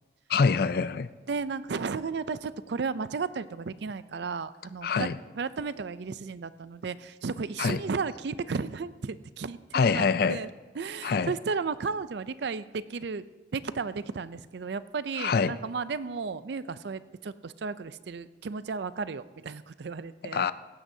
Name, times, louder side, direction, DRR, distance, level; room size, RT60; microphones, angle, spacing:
voice 1, 0.3-1.1 4.8-5.1 7.6-7.8 9.7-10.4 11.0-11.3 15.2-15.6 20.3-20.5, left 5 dB, 50° left, 0.4 m, -25 dB
voice 2, 1.3-5.1 5.3-10.5 10.7-13.2 13.5-20.4, right 5 dB, 60° right, 0.4 m, -34 dB
17.5 x 16.0 x 2.7 m
head